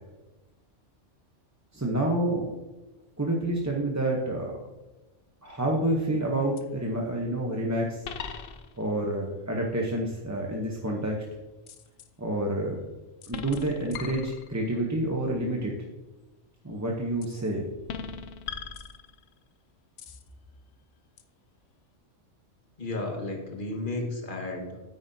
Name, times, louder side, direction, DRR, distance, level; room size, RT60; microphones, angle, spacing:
voice 1, 1.7-2.5 3.2-4.5 5.4-8.0 8.8-11.2 12.2-12.8 13.3-15.7 16.6-17.7, right 1 dB, 15° right, -1 dB, 0.8 m, -28 dB
sound 1, 5.4-5.9 6.6-6.7 8.0-9.0 11.7-12.1 13.2-14.8 17.2-17.5 17.9-19.4 20.0-20.3 21.2-21.3, left 6 dB, 65° left, 0.8 m, -40 dB
voice 2, 22.8-24.8, left 2 dB, 45° left, 2 dB, 1.6 m, -33 dB
9.1 x 9.0 x 2.7 m, 1.1 s
omnidirectional pair, 1.3 m